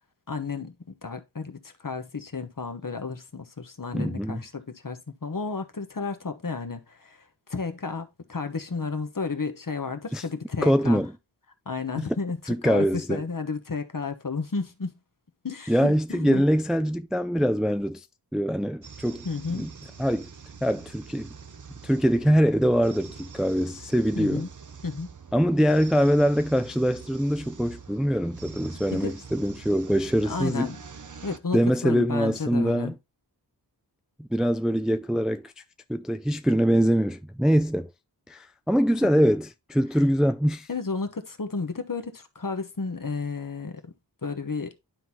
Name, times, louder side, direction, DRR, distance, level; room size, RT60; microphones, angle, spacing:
voice 1, 0.3-0.7 1.0-11.0 11.7-14.9 15.4-16.4 19.2-19.7 24.1-24.5 24.8-25.1 28.9-29.1 30.2-30.8 31.2-32.9 40.7-43.9 44.2-44.8, left 4 dB, 50° left, 1.1 m, -32 dB
voice 2, 3.9-4.4 10.1-10.2 10.6-11.1 12.0-12.1 12.5-13.2 15.7-18.1 18.3-19.2 19.5-19.7 20.0-20.3 20.6-21.3 21.8-24.5 25.3-30.7 31.5-32.9 34.2-35.5 35.9-37.9 38.3-40.7, equal, ahead, 0.4 m, -23 dB
sound 1, 18.8-31.4, right 6 dB, 45° right, 0.8 m, -45 dB
11.5 x 3.9 x 2.8 m
wide cardioid pair, 50°, 42 cm